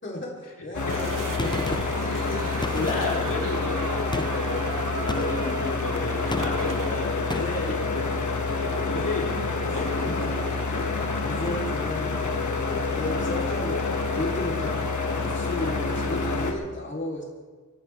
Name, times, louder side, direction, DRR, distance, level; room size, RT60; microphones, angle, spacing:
voice 1, 0.0-2.7 6.7-7.1 7.4-7.8 8.9-9.3 9.7-10.3 10.6-17.2, left 1 dB, 35° left, -3 dB, 3.5 m, -35 dB
sound 1, 0.7-16.5, left 3 dB, 65° left, 1.9 m, -27 dB
sound 2, 0.9-6.9, right 7 dB, 75° right, 0.7 m, -38 dB
Gunshot gunfire, 1.4-2.1 2.6-3.3 4.1-4.5 5.1-5.5 6.3-6.8 7.3-7.7, left 2 dB, 15° left, 0.5 m, -33 dB
voice 2, 2.6-8.3 8.7-9.4 9.7-9.9, left 3 dB, 80° left, -4 dB, 3.7 m, -33 dB
28.0 x 11.5 x 3.5 m, 1.4 s
wide cardioid pair, 90°, 32 cm